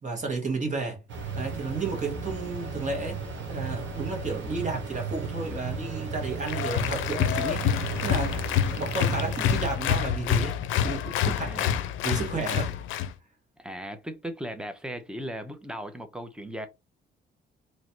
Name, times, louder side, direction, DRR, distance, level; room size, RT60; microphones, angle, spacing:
voice 1, 0.0-1.0 1.3-3.2 3.5-8.4 8.6-11.7 12.0-12.7, right 3 dB, 40° right, 1.7 m, -32 dB
sound 1, 1.1-9.8, right 4 dB, 70° right, 1.2 m, -35 dB
sound 2, 6.2-9.9 10.2-10.3, right 5 dB, 90° right, 1.2 m, -45 dB
Applause, 6.5-13.1, left 9 dB, 80° left, 0.5 m, -27 dB
voice 2, 11.4-11.9 13.6-16.7, equal, 5° right, 0.8 m, -37 dB
3.1 x 2.5 x 4.4 m
cardioid pair, 90°, 20 cm